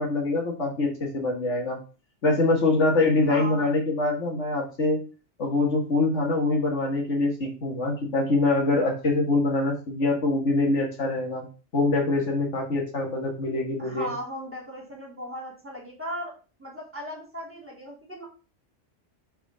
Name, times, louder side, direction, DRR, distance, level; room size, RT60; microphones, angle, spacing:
voice 1, 0.0-1.8 2.2-5.0 5.4-11.5 11.7-14.1, left 2 dB, 75° left, 1 dB, 1.9 m, -24 dB
voice 2, 3.3-3.7 13.8-16.3 16.6-18.3, equal, 10° right, -1 dB, 2.8 m, -37 dB
4.9 x 4.5 x 6.0 m, 0.35 s
omnidirectional pair, 1.2 m